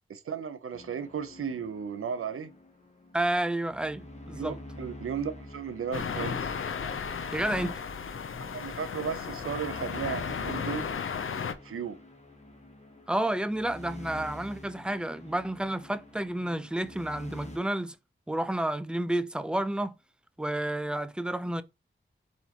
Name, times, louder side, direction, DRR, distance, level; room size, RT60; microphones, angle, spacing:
voice 1, 0.1-2.5 4.3-6.6 8.4-10.9 11.6-12.0, right 7 dB, 85° right, 0.6 m, -35 dB
sound 1, 0.7-17.6, left 1 dB, 30° left, 1.2 m, -48 dB
voice 2, 3.1-4.6 7.3-7.8 13.1-17.9 18.3-19.9 20.4-21.6, right 1 dB, 5° right, 0.5 m, -30 dB
sound 2, 5.9-11.5, left 6 dB, 75° left, 0.6 m, -34 dB
4.2 x 4.1 x 2.9 m
cardioid pair, 45°, 21 cm